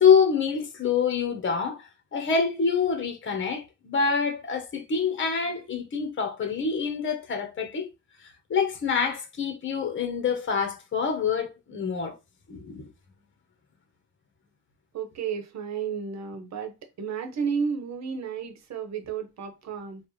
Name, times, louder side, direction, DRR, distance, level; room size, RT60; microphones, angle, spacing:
voice 1, 0.0-1.8 2.1-7.9 8.5-12.2 12.5-12.9, left 6 dB, 40° left, 1.2 m, -26 dB
voice 2, 14.9-16.7 17.0-20.0, right 6 dB, 60° right, 1.1 m, -32 dB
4.5 x 2.5 x 3.2 m
cardioid pair, 90°, 30 cm